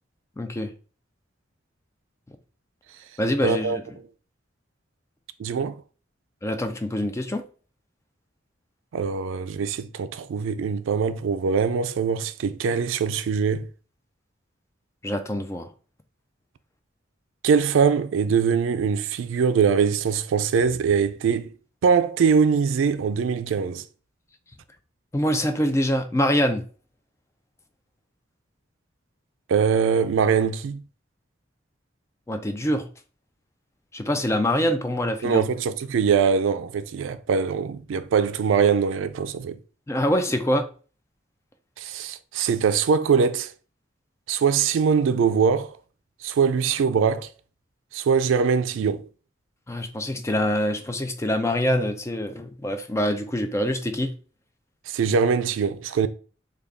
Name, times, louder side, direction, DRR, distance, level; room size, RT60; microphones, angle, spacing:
voice 1, 0.4-0.7 3.2-3.7 6.4-7.4 15.0-15.7 25.1-26.6 32.3-32.9 33.9-35.4 39.9-40.7 49.7-54.1, equal, 15° left, 0.4 m, -25 dB
voice 2, 3.4-3.8 5.4-5.8 8.9-13.7 17.4-21.5 21.8-23.8 29.5-30.8 35.2-39.6 41.8-43.5 44.3-45.7 46.2-47.3 47.9-49.1 54.9-56.1, right 6 dB, 90° right, 0.3 m, -22 dB
3.4 x 2.3 x 3.5 m
head